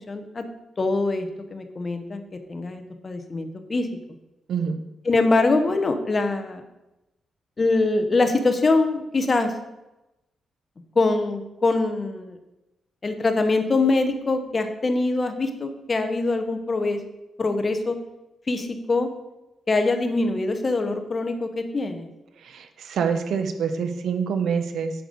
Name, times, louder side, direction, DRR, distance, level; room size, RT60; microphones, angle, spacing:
voice 1, 0.1-0.5 0.8-3.9 5.0-6.6 7.6-9.5 10.9-12.4 13.0-17.0 17.4-18.0 18.5-19.1 19.7-22.1, left 3 dB, 30° left, 7 dB, 1.0 m, -23 dB
voice 2, 22.4-24.9, right 6 dB, 75° right, 8 dB, 0.9 m, -26 dB
9.0 x 6.7 x 5.3 m, 0.94 s
wide cardioid pair, 140°, 0 cm